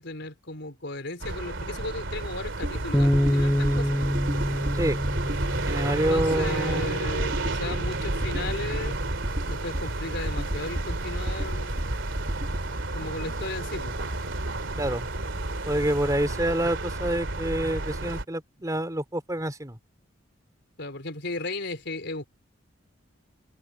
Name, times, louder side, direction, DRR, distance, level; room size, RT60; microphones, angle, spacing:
voice 1, 0.0-4.0 6.1-9.0 9.5-11.9 12.9-14.0 20.8-22.3, left 2 dB, 60° left, 4.4 m, -35 dB
sound 1, 1.2-18.2, right 2 dB, 70° right, 2.9 m, -32 dB
sound 2, 2.6-12.8, right 1 dB, 40° right, 1.5 m, -32 dB
Bass guitar, 2.9-9.2, equal, 5° left, 1.2 m, -28 dB
voice 2, 5.7-7.0 14.8-15.1 15.6-19.8, right 1 dB, 20° right, 3.2 m, -27 dB
head